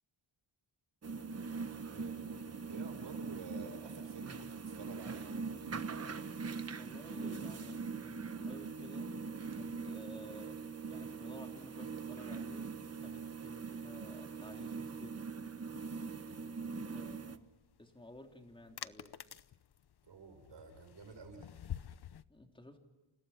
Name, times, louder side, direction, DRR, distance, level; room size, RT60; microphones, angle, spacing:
sound 1, 1.0-17.4, right 5 dB, 30° right, 1.2 m, -42 dB
voice 1, 1.9-5.4 16.3-16.6 20.0-21.5, right 5 dB, 60° right, 6 dB, 6.6 m, -51 dB
voice 2, 6.8-9.1 9.5-10.6 10.9-12.7 13.0-15.3 16.8-17.5 17.8-19.1 22.3-22.8, left 1 dB, 10° left, 3 dB, 3.4 m, -54 dB
sound 2, 17.0-22.2, left 10 dB, 50° left, 0.9 m, -48 dB
29.5 x 29.5 x 5.8 m, 1.1 s
wide cardioid pair, 160°, 49 cm